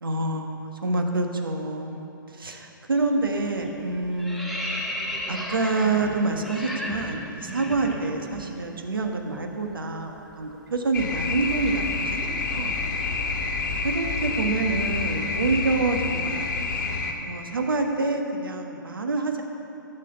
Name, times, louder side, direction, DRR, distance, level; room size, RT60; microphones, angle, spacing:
voice 1, 0.0-4.5 5.3-12.8 13.8-16.8 17.2-19.4, right 3 dB, 75° right, 3 dB, 1.2 m, -27 dB
sound 1, 2.9-3.2 3.5-8.5 8.8-9.0 9.3-13.3, equal, ahead, 1.4 m, -36 dB
sound 2, 10.9-17.1, left 4 dB, 65° left, 1.7 m, -28 dB
14.5 x 6.8 x 6.8 m, 2.9 s
figure-of-eight pair, 125°, 12 cm